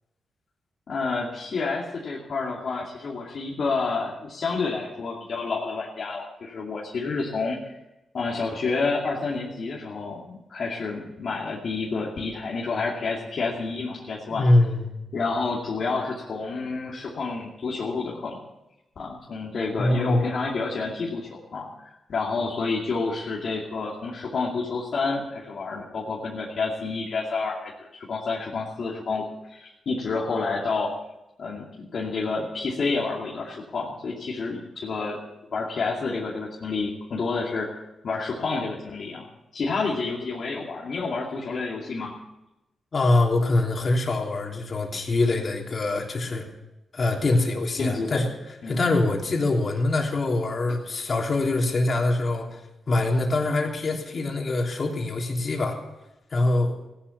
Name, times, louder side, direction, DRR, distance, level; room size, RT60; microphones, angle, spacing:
voice 1, 0.9-7.6 8.1-14.4 15.1-18.4 19.0-30.9 31.4-35.2 35.5-39.3 39.5-42.1 47.8-48.3 48.6-48.8, left 4 dB, 65° left, -4 dB, 2.5 m, -29 dB
voice 2, 14.3-14.8 19.8-20.2 42.9-46.5 46.9-48.3 48.7-52.6 52.9-55.8 56.3-56.7, left 2 dB, 50° left, 1 dB, 3.4 m, -24 dB
15.5 x 11.5 x 7.1 m, 0.95 s
cardioid pair, 75°, 0 cm